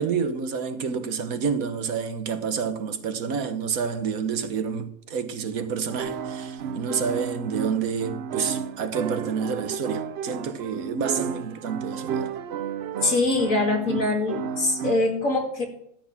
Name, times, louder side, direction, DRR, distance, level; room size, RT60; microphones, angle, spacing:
voice 1, 0.0-12.3, right 6 dB, 90° right, 1.6 m, -29 dB
sound 1, 5.9-15.0, right 7 dB, 60° right, 0.7 m, -32 dB
voice 2, 13.0-15.6, left 2 dB, 70° left, 2.8 m, -23 dB
13.0 x 8.3 x 5.9 m
omnidirectional pair, 1.4 m